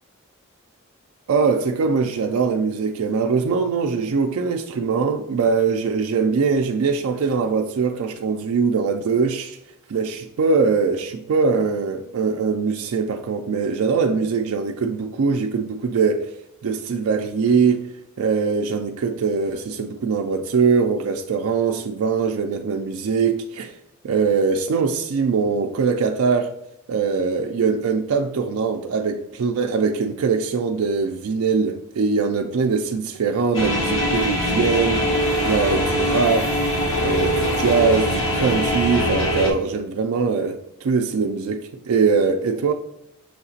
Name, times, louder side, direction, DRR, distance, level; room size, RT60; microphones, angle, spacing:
voice 1, 1.3-9.6 9.9-16.3 16.6-17.9 18.2-23.8 24.0-26.5 26.9-35.1 35.5-36.6 37.0-42.7, right 5 dB, 75° right, 0.4 m, -22 dB
sound 1, 33.5-39.5, equal, 65° left, 0.9 m, -22 dB
6.4 x 2.8 x 2.7 m
head